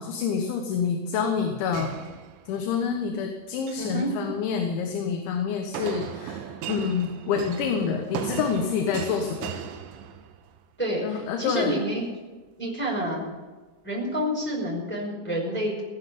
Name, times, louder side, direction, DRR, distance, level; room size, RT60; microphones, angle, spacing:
voice 1, 0.0-1.9 2.5-9.6 11.0-11.8, left 6 dB, 75° left, 3 dB, 3.5 m, -27 dB
sound 1, 1.7-2.8 3.5-4.0 5.7-10.6, right 8 dB, 85° right, 3.4 m, -37 dB
voice 2, 3.8-4.1 10.8-12.0 12.6-13.2 13.8-15.8, equal, ahead, -4 dB, 4.5 m, -28 dB
18.0 x 8.2 x 8.5 m, 1.2 s
omnidirectional pair, 5.5 m